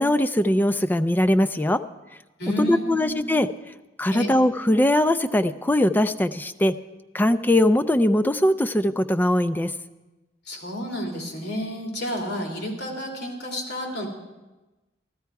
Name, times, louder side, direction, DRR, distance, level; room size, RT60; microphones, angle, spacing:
voice 1, 0.0-1.8 2.6-3.5 4.0-6.7 7.1-9.7, left 1 dB, 10° left, 10 dB, 0.4 m, -21 dB
voice 2, 2.4-3.3 4.1-4.3 10.4-14.1, equal, 65° left, 1 dB, 3.0 m, -30 dB
14.0 x 13.5 x 4.7 m, 1.1 s
head